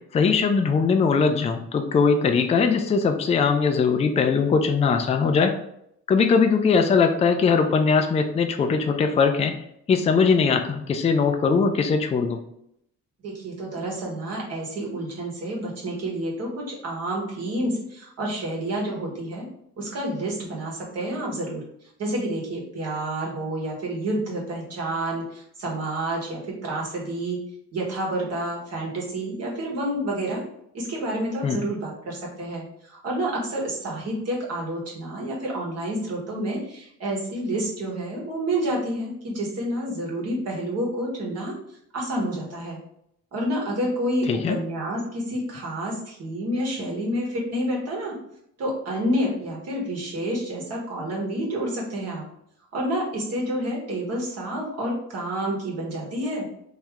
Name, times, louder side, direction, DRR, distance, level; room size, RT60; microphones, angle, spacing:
voice 1, 0.1-5.5 6.1-9.5 9.9-12.4 31.4-31.6 44.3-44.6, left 5 dB, 20° left, 5 dB, 0.3 m, -20 dB
voice 2, 13.2-19.5 19.8-21.6 22.0-27.4 27.7-30.4 30.7-41.5 41.9-42.8 43.3-48.1 48.6-52.2 52.7-56.4, right 1 dB, 55° right, -3 dB, 1.4 m, -29 dB
3.2 x 2.9 x 3.5 m, 0.74 s
cardioid pair, 125°, 30 cm